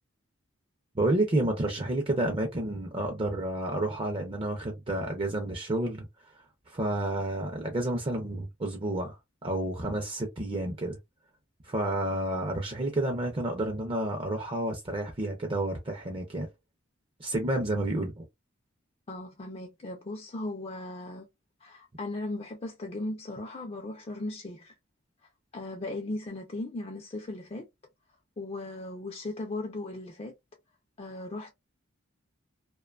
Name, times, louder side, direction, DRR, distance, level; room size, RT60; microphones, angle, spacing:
voice 1, 1.0-6.1 6.7-11.0 11.6-16.5 17.2-18.2, right 1 dB, 25° right, 0.5 m, -30 dB
voice 2, 19.1-21.3 21.6-24.7 25.5-27.6 28.4-30.3 31.0-31.5, left 2 dB, 30° left, 0.4 m, -37 dB
2.5 x 2.2 x 2.4 m
head